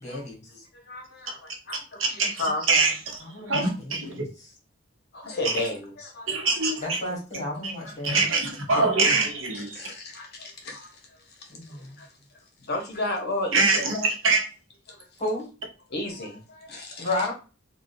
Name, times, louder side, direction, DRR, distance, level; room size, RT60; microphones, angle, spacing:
voice 1, 0.0-0.6 3.2-4.2 6.8-8.3 11.6-12.0 15.2-15.5 17.0-17.3, left 1 dB, 35° left, 1.4 m, -32 dB
voice 2, 0.5-2.9 3.4-3.7 5.1-6.7 7.8-7.9 8.7-9.0 9.5-12.1 12.6-14.1 14.9-15.1 15.9-17.3, left 2 dB, 55° left, 0.9 m, -34 dB
voice 3, 2.0-2.4 2.7-2.9 3.5-4.2 5.4-5.5 6.3-7.0 7.6-7.7 8.0-9.8 13.5-14.4, right 3 dB, 75° right, 0.9 m, -23 dB
3.6 x 2.3 x 2.5 m
head